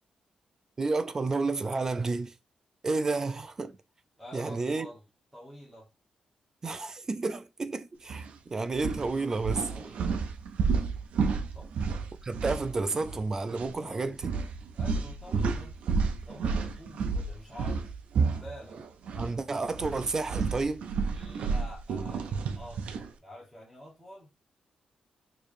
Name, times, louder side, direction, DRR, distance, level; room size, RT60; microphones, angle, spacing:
voice 1, 0.8-2.3 2.8-3.8 4.3-4.9 6.6-9.7 12.2-14.3 19.2-20.8, right 3 dB, 25° right, 0.3 m, -31 dB
voice 2, 4.2-5.0 5.3-5.9 9.7-10.2 11.5-11.9 13.7-14.1 14.7-15.7 16.3-17.9 18.1-18.8 21.1-24.3, equal, 5° right, 1.1 m, -48 dB
sound 1, 8.1-8.3 8.7-13.2 13.5-13.7 14.2-19.3 19.6-23.1, right 5 dB, 80° right, 0.5 m, -31 dB
4.5 x 3.0 x 2.6 m
wide cardioid pair, 170°, 2 cm